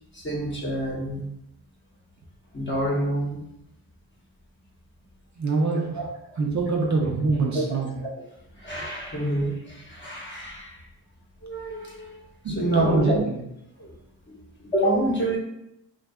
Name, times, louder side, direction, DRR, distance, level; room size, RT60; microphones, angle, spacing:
voice 1, 0.1-1.3 2.5-3.4 5.9-6.0 7.5-7.6 8.0-8.2 8.5-10.9 11.4-13.2 13.8-13.9 14.3-15.4, right 1 dB, 25° left, -3 dB, 0.9 m, -28 dB
voice 2, 5.4-6.0 6.4-8.0 12.4-13.4, right 3 dB, 45° right, -1 dB, 0.6 m, -24 dB
2.5 x 2.2 x 2.3 m, 0.81 s
supercardioid pair, 45°, 43 cm